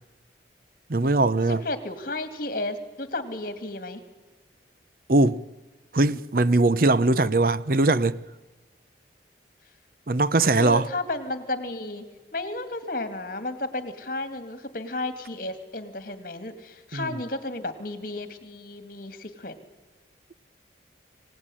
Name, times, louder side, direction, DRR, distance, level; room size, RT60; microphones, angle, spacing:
voice 1, 0.9-1.6 5.1-5.4 5.9-8.2 10.1-10.9 16.9-17.2, right 2 dB, 50° right, 0.7 m, -21 dB
voice 2, 1.5-4.0 10.6-12.0 12.3-19.6, left 2 dB, 50° left, 2.5 m, -33 dB
26.0 x 18.0 x 10.0 m
head